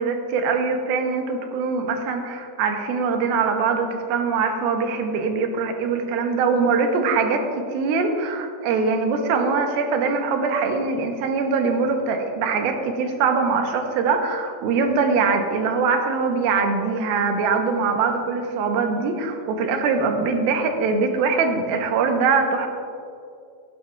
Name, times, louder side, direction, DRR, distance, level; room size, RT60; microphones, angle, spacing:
voice 1, 0.0-7.4 7.7-22.7, right 4 dB, 80° right, 4 dB, 2.5 m, -22 dB
16.0 x 9.6 x 2.3 m, 2.4 s
omnidirectional pair, 4.6 m